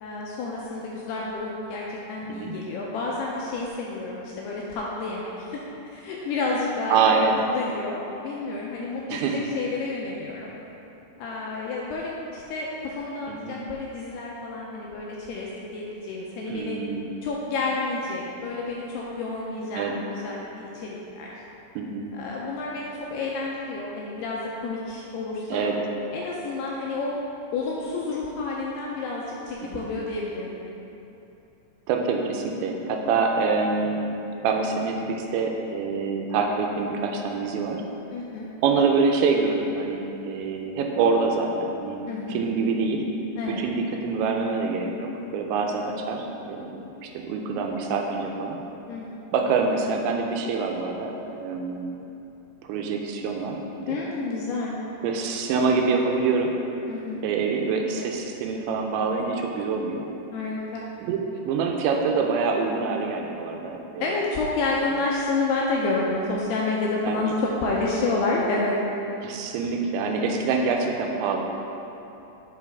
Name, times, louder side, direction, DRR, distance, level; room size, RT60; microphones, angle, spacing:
voice 1, 0.0-10.5 11.2-16.8 17.2-20.5 20.7-21.3 22.1-25.7 26.1-27.2 27.5-30.5 38.1-38.5 42.1-42.5 43.4-43.7 45.6-45.7 48.9-49.2 53.9-54.7 56.9-57.2 60.3-60.8 64.0-68.8, left 3 dB, 85° left, -3 dB, 2.4 m, -30 dB
voice 2, 6.9-7.4 9.1-9.5 13.3-13.6 16.5-17.1 19.8-19.9 21.8-22.1 25.5-25.8 29.6-29.9 31.9-34.1 34.4-37.8 38.6-42.0 42.3-43.1 43.6-48.6 49.3-52.0 52.6-54.0 55.0-56.5 57.2-60.1 61.0-64.1 67.1-67.2 69.2-71.4, right 4 dB, 85° right, 2 dB, 2.9 m, -25 dB
10.5 x 5.3 x 3.5 m, 2.9 s
omnidirectional pair, 5.2 m